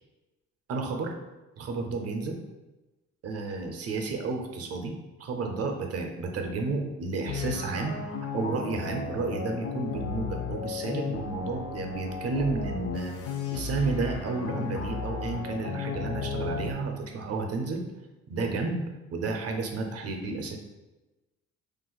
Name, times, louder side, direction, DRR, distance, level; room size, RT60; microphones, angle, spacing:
voice 1, 0.7-1.1 1.6-2.4 3.2-4.9 5.2-8.0 8.3-13.1 13.5-17.8 18.3-18.8 19.1-20.6, right 3 dB, 55° right, 4 dB, 0.6 m, -31 dB
sound 1, 7.3-16.7, left 5 dB, 50° left, 0.5 m, -35 dB
2.5 x 2.3 x 3.8 m, 1.1 s
cardioid pair, 90°, 30 cm